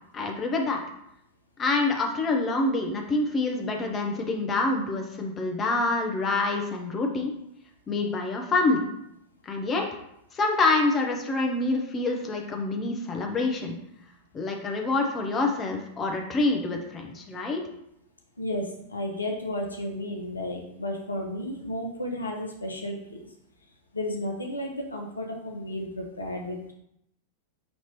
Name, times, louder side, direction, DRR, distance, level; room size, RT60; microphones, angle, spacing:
voice 1, 0.1-0.8 1.6-7.3 7.9-8.9 9.4-9.9 10.3-13.8 14.3-17.6, left 3 dB, 25° left, 2 dB, 0.7 m, -26 dB
voice 2, 18.4-23.0 23.9-26.7, left 1 dB, 80° left, 1 dB, 0.6 m, -33 dB
5.3 x 2.8 x 3.0 m, 0.79 s
figure-of-eight pair, 90°, 0 cm